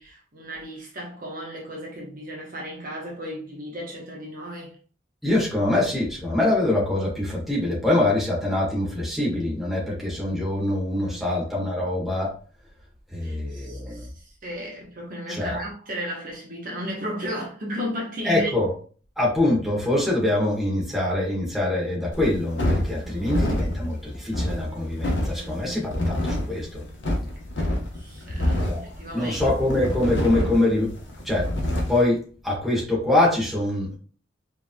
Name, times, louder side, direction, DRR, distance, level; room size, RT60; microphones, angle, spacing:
voice 1, 0.0-4.7 10.9-11.4 13.2-18.5 23.0-23.5 25.4-26.2 27.9-29.5, equal, 45° right, 1.1 m, -35 dB
voice 2, 5.2-12.3 13.1-14.1 15.3-15.6 18.2-18.7 19.2-26.8 28.7-28.8 29.1-31.0 31.2-34.0, left 1 dB, ahead, 1.6 m, -24 dB
sound 1, 22.1-32.0, left 1 dB, 60° left, 1.0 m, -27 dB
5.0 x 3.5 x 2.3 m
head